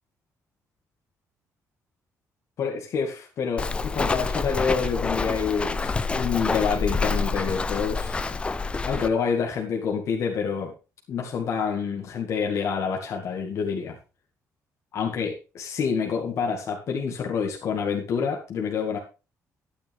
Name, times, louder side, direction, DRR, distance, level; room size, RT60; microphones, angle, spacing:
voice 1, 2.6-8.2 8.8-10.7 11.1-14.0 14.9-19.0, left 6 dB, 55° left, 0 dB, 2.1 m, -27 dB
Walk footsteps, 3.6-9.1, left 4 dB, 15° left, 0.7 m, -27 dB
12.5 x 9.7 x 3.5 m, 0.32 s
cardioid pair, 160°, 6 cm